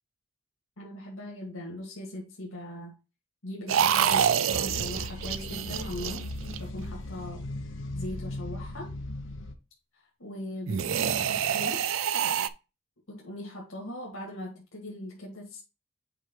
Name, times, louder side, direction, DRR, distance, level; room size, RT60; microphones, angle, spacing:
voice 1, 0.8-2.9 3.4-7.5 7.9-8.9 9.9-11.9 13.1-15.6, left 1 dB, 85° left, 1.9 m, -40 dB
sound 1, 3.7-6.9 10.7-12.5, right 8 dB, 75° right, 0.4 m, -27 dB
sound 2, 4.5-9.5, left 1 dB, 65° left, 0.9 m, -38 dB
7.7 x 4.9 x 3.0 m
head